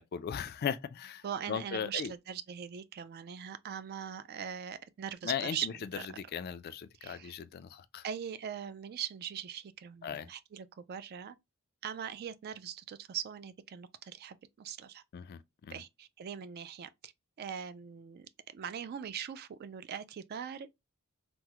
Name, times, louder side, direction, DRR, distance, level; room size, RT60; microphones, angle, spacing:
voice 1, 0.0-2.1 5.2-5.7 6.2-8.0 10.0-10.3 15.1-15.7, left 7 dB, 45° left, 0.3 m, -37 dB
voice 2, 1.2-5.7 5.9-6.1 7.0-7.3 8.0-11.4 11.8-15.0 15.7-17.1 17.4-20.7, right 8 dB, 45° right, 0.3 m, -41 dB
3.4 x 2.0 x 2.8 m
head